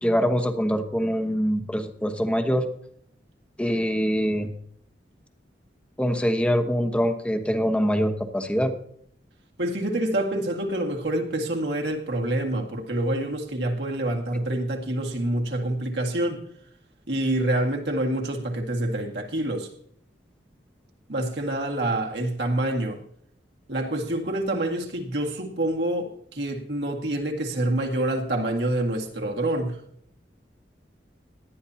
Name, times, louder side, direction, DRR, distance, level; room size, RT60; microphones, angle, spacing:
voice 1, 0.0-2.7 3.6-4.5 6.0-8.7, equal, 5° left, 1.1 m, -24 dB
voice 2, 9.6-16.4 17.1-19.7 21.1-23.0 23.7-26.1 26.4-29.8, right 1 dB, 70° right, 2.0 m, -27 dB
18.5 x 11.5 x 2.8 m
head